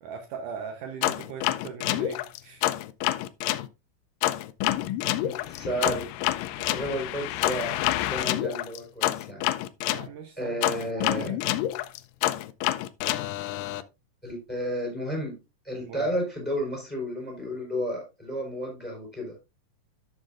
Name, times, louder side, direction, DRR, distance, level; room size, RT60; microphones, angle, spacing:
voice 1, 0.0-2.8 9.9-10.6 10.9-11.4 15.8-16.1, right 6 dB, 75° right, 2.3 m, -40 dB
sound 1, 1.0-3.7 4.2-10.1 10.6-13.8, left 14 dB, 80° left, 2.0 m, -28 dB
voice 2, 5.2-6.1 6.6-9.4 10.4-11.3 14.2-15.3 15.6-19.4, equal, 5° left, 3.9 m, -32 dB
12.0 x 6.5 x 2.5 m
omnidirectional pair, 4.1 m